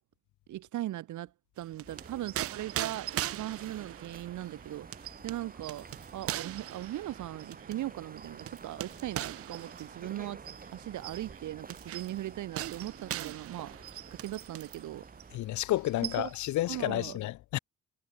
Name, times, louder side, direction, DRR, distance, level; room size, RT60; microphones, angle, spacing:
voice 1, 0.5-1.3 1.6-5.9 6.1-10.4 10.7-15.0 16.2-16.3 16.7-17.2, right 14 dB, 75° right, 1.6 m, -39 dB
sound 1, 1.6-14.9 15.2-15.4 15.7-16.5, right 13 dB, 50° right, 0.4 m, -41 dB
sound 2, 1.8-15.4, right 4 dB, 30° right, 2.8 m, -50 dB
voice 2, 15.3-17.6, left 16 dB, 70° left, 0.6 m, -31 dB
cardioid pair, 90°, 30 cm